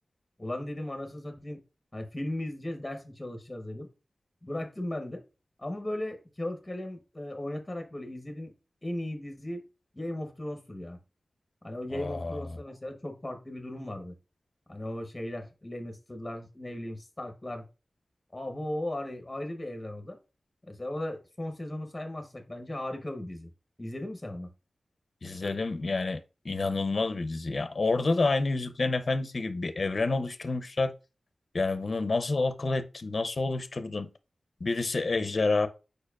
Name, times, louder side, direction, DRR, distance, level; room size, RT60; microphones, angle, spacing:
voice 1, 0.4-1.6 1.9-3.9 4.4-5.2 5.6-8.5 8.8-9.6 10.0-11.0 11.6-14.1 14.7-17.7 18.3-20.2 20.7-23.5 23.8-24.5, left 1 dB, 20° left, 0.9 m, -37 dB
voice 2, 11.9-12.4 25.2-26.2 26.4-30.9 31.5-34.1 34.6-35.7, left 3 dB, 55° left, 0.5 m, -28 dB
4.9 x 4.5 x 2.3 m
wide cardioid pair, 75°, 0 cm